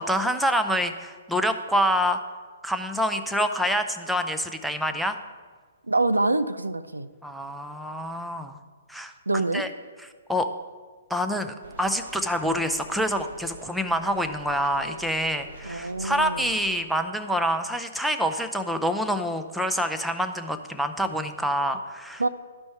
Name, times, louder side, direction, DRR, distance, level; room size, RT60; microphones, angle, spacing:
voice 1, 0.0-2.2 2.6-5.2 7.2-8.6 8.9-9.7 10.3-10.5 11.1-22.2, equal, ahead, 6 dB, 0.5 m, -26 dB
voice 2, 5.9-7.1 9.3-9.6 15.6-16.5 22.2-22.3, right 2 dB, 85° right, 12 dB, 0.4 m, -25 dB
sound 1, 11.6-16.8, right 1 dB, 60° right, 1.1 m, -45 dB
11.5 x 5.3 x 4.5 m, 1.5 s
figure-of-eight pair, 125°, 0 cm